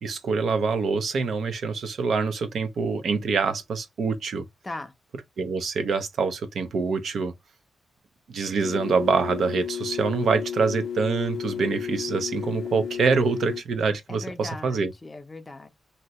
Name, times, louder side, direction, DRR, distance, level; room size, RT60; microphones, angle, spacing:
voice 1, 0.0-4.5 5.4-7.3 8.3-14.9, right 4 dB, 70° right, 0.7 m, -25 dB
sound 1, 8.6-13.6, left 8 dB, 75° left, 0.5 m, -32 dB
voice 2, 14.1-15.7, left 2 dB, 20° left, 0.5 m, -38 dB
2.8 x 2.7 x 3.0 m
wide cardioid pair, 155°, 0 cm